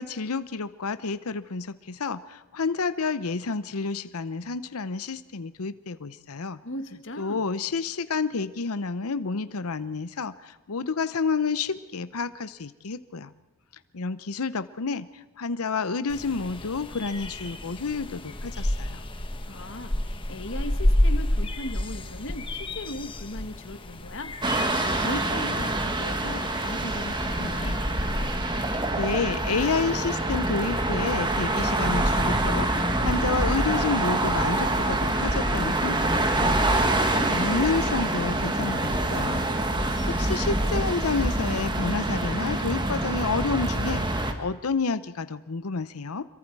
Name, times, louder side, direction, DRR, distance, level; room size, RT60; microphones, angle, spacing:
voice 1, 0.0-6.6 7.2-13.3 13.9-19.0 28.9-36.8 37.3-39.4 40.1-46.3, left 4 dB, 75° left, 13 dB, 0.8 m, -30 dB
voice 2, 6.6-7.4 19.5-24.3 25.0-27.8 37.0-37.4 37.7-38.1, left 1 dB, 60° left, 7 dB, 1.7 m, -38 dB
sound 1, 16.1-28.3, left 1 dB, 25° left, 1.2 m, -30 dB
sound 2, 24.4-44.3, right 1 dB, 20° right, 1.6 m, -26 dB
27.0 x 23.0 x 4.7 m, 1.0 s
head